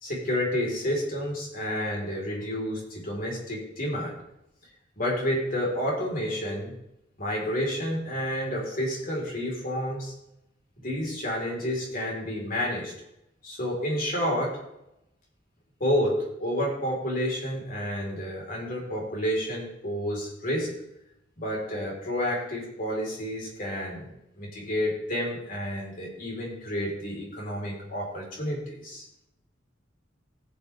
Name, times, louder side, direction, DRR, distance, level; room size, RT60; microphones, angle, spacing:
voice 1, 0.0-4.1 5.0-6.7 7.2-10.1 10.8-12.9 13.4-14.6 15.8-20.7 21.4-24.0 24.4-29.2, equal, 50° left, -2 dB, 4.4 m, -30 dB
19.0 x 8.1 x 3.6 m, 0.85 s
head